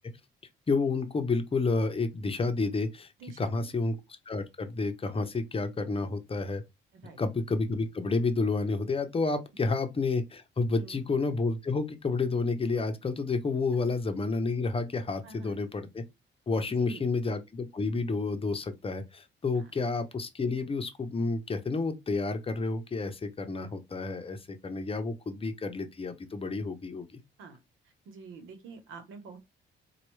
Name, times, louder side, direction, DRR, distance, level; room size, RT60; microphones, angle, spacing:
voice 1, 0.7-3.1 3.4-6.6 7.2-16.0 16.5-27.2, left 3 dB, 30° left, 0.7 m, -30 dB
voice 2, 3.2-3.7 6.9-7.2 9.5-9.7 10.8-11.0 15.2-15.6 16.8-17.0 19.5-19.7 27.4-27.6 28.1-29.4, right 4 dB, 85° right, 1.0 m, -47 dB
4.3 x 2.3 x 3.1 m
cardioid pair, 90°, 20 cm